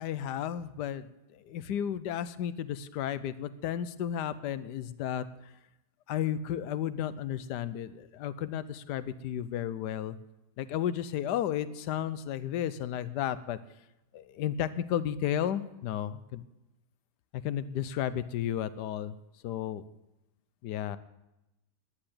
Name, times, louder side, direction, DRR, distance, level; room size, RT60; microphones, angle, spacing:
voice 1, 0.0-5.3 6.1-10.2 10.6-13.6 14.1-16.4 17.3-19.2 19.4-19.8 20.6-21.0, left 10 dB, 75° left, 14 dB, 1.3 m, -33 dB
11.0 x 10.0 x 8.6 m, 0.92 s
omnidirectional pair, 1.8 m